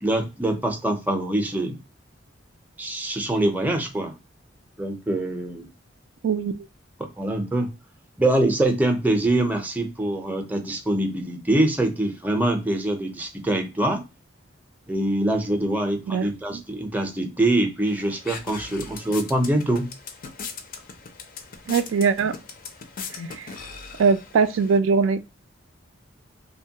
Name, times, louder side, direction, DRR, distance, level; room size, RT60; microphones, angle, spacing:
voice 1, 0.0-1.8 2.8-4.1 4.8-5.7 7.2-7.7 8.2-14.0 14.9-19.9, right 1 dB, 10° right, 0.5 m, -24 dB
voice 2, 16.1-16.6 21.7-22.3 23.1-23.5 24.0-25.2, right 5 dB, 75° right, 0.3 m, -22 dB
sound 1, 17.9-24.8, left 5 dB, 45° left, 0.4 m, -39 dB
2.9 x 2.2 x 2.7 m
head